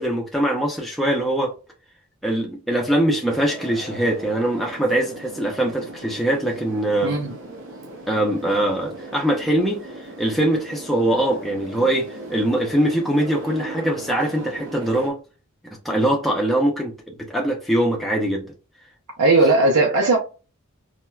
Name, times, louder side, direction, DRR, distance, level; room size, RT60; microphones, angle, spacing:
voice 1, 0.0-1.5 2.2-7.2 8.1-15.2 15.8-18.4, right 1 dB, ahead, 0.4 m, -22 dB
sound 1, 3.3-15.1, right 2 dB, 60° right, 0.8 m, -38 dB
voice 2, 7.0-7.3 19.2-20.2, right 2 dB, 90° right, 0.6 m, -17 dB
4.3 x 2.0 x 2.3 m
head